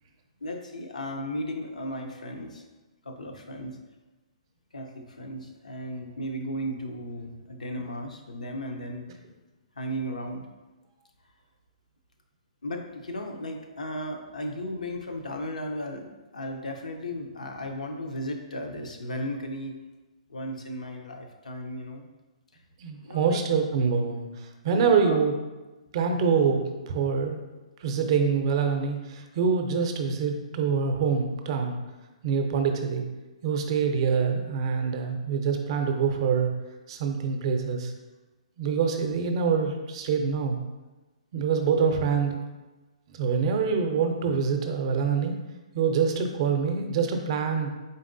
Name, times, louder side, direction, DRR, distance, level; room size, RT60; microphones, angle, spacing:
voice 1, 0.4-2.6 3.0-3.8 4.7-9.0 9.8-10.5 12.6-19.8 20.3-22.1 23.0-23.4 24.7-25.2, equal, 90° left, 3 dB, 0.6 m, -35 dB
voice 2, 22.8-25.3 25.9-27.4 27.8-31.8 32.2-33.0 33.4-36.5 36.9-37.9 38.6-40.6 41.3-42.4 43.1-45.3 45.7-47.7, right 6 dB, 45° right, 5 dB, 0.5 m, -25 dB
4.0 x 3.5 x 2.6 m, 1.1 s
hypercardioid pair, 140°, 4 cm